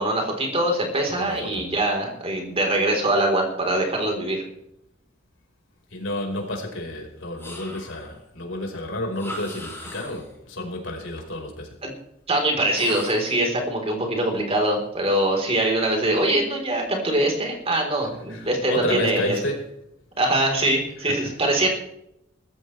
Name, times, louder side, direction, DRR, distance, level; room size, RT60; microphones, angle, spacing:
voice 1, 0.0-4.4 11.8-11.9 12.3-19.4 20.2-21.7, right 1 dB, 30° right, 1 dB, 4.0 m, -23 dB
voice 2, 1.1-1.6 5.9-11.7 18.0-19.6 21.1-21.3, left 1 dB, 65° left, 1 dB, 4.9 m, -31 dB
sound 1, 7.4-8.2 9.1-10.4 12.7-13.4, left 1 dB, 10° left, 7.3 m, -39 dB
20.0 x 15.0 x 3.4 m, 0.77 s
head